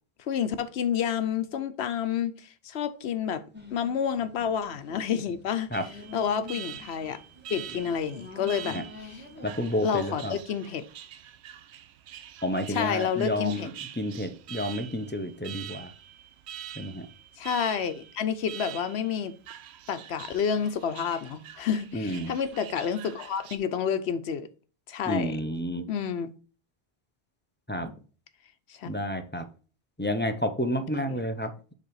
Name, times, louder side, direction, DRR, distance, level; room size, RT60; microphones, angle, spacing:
voice 1, 0.2-3.4 3.7-5.7 6.1-7.2 7.5-8.8 9.1-9.2 9.8-10.8 12.7-13.7 17.4-19.3 19.9-24.5 24.9-25.4 25.9-26.3 28.7-28.9 31.1-31.2, left 7 dB, 80° left, 1.0 m, -29 dB
sound 1, 3.5-9.8, left 4 dB, 10° right, 1.9 m, -46 dB
Alarm, 5.7-23.6, right 11 dB, 85° right, 0.8 m, -45 dB
voice 2, 9.4-10.4 12.4-13.7 14.0-15.9 16.8-17.1 21.9-22.3 25.0-25.9 27.7-28.0 28.8-29.5 30.0-31.7, left 1 dB, 10° left, 0.6 m, -30 dB
7.5 x 3.4 x 4.6 m
omnidirectional pair, 1.1 m